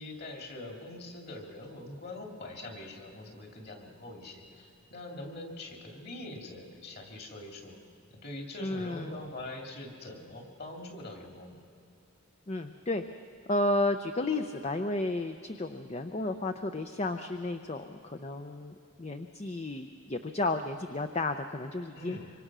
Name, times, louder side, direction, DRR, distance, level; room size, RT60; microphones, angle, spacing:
voice 1, 0.0-7.8 8.1-11.6 21.9-22.3, left 1 dB, 45° left, 2 dB, 2.7 m, -43 dB
voice 2, 8.6-9.2 12.5-13.0 13.5-22.2, left 2 dB, 30° left, 7 dB, 0.6 m, -32 dB
25.5 x 25.0 x 6.2 m, 2.7 s
head